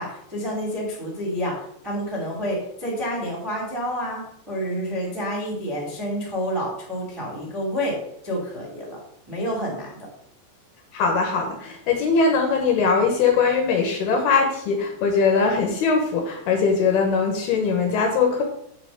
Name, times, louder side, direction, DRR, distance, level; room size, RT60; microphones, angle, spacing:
voice 1, 0.0-1.5 1.8-8.0 8.2-9.0 9.3-10.1, equal, 10° right, -4 dB, 1.8 m, -29 dB
voice 2, 10.9-18.4, left 5 dB, 70° left, 2 dB, 2.8 m, -21 dB
7.6 x 4.9 x 6.4 m, 0.70 s
omnidirectional pair, 5.3 m